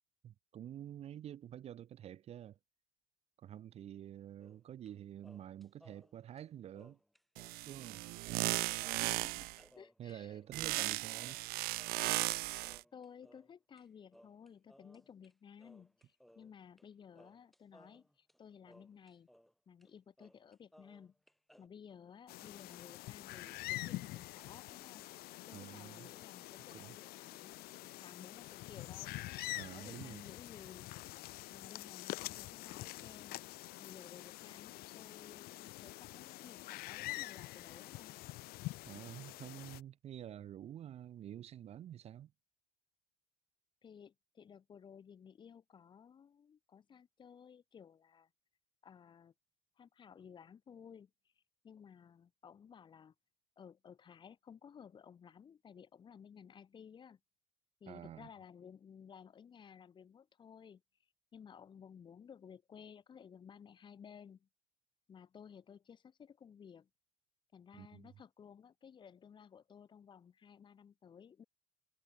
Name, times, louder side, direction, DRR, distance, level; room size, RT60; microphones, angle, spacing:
voice 1, 0.2-2.6 3.4-7.0 7.6-8.0 10.0-11.4 25.5-26.1 26.7-27.0 29.5-30.2 38.8-42.3 57.9-58.3 67.7-68.1, right 11 dB, 35° right, 1.2 m, -49 dB
sound 1, 4.4-5.0 5.2-7.6 7.9-8.0 8.2-13.8 14.1-15.3 15.6-16.9 17.1-19.5 19.8-19.9 20.2-21.7, equal, ahead, 1.5 m, -64 dB
sound 2, 7.4-9.6 10.5-12.8, right 22 dB, 55° right, 0.5 m, -36 dB
voice 2, 8.9-9.5 9.8-10.4 12.9-19.3 19.7-21.1 21.6-25.1 25.5-29.1 29.7-30.9 31.5-33.4 33.8-38.2 43.8-48.3 48.8-49.3 49.8-51.1 51.4-53.1 53.6-57.2 57.8-60.8 61.3-64.5 65.1-66.9 67.5-71.4, left 7 dB, 25° left, 2.4 m, -56 dB
sound 3, 22.3-39.8, left 19 dB, 55° left, 1.6 m, -46 dB
cardioid pair, 160°, 18 cm